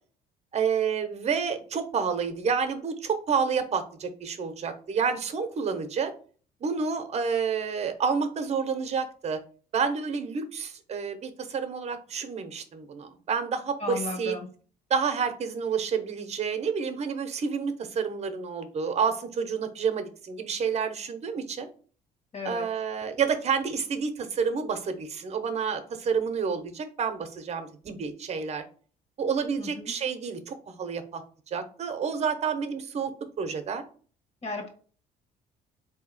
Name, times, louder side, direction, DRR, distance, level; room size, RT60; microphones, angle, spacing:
voice 1, 0.5-6.1 6.6-9.4 9.7-14.4 14.9-21.7 22.4-28.6 29.2-31.2 31.5-33.8, right 6 dB, 40° right, 9 dB, 0.8 m, -29 dB
voice 2, 13.8-14.5 22.3-22.7 29.6-29.9 34.4-34.7, left 3 dB, 40° left, 4 dB, 1.3 m, -35 dB
3.9 x 2.8 x 3.9 m, 0.41 s
cardioid pair, 110°, 17 cm